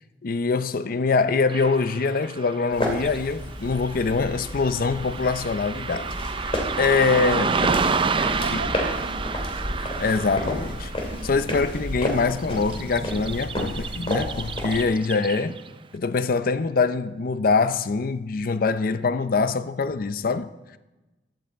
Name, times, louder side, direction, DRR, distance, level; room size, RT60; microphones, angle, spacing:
voice 1, 0.2-6.1 6.3-7.6 8.5-8.6 9.8-10.9 11.2-15.6 15.9-20.8, left 4 dB, 55° left, 0.5 m, -24 dB
Car passing by / Traffic noise roadway noise, 1.5-15.8, right 5 dB, 30° right, 0.5 m, -30 dB
sound 1, 2.7-14.8, left 1 dB, 35° left, 2.7 m, -31 dB
voice 2, 8.0-9.3 11.1-11.3, right 2 dB, 80° right, 1.9 m, -36 dB
16.0 x 12.0 x 4.6 m
head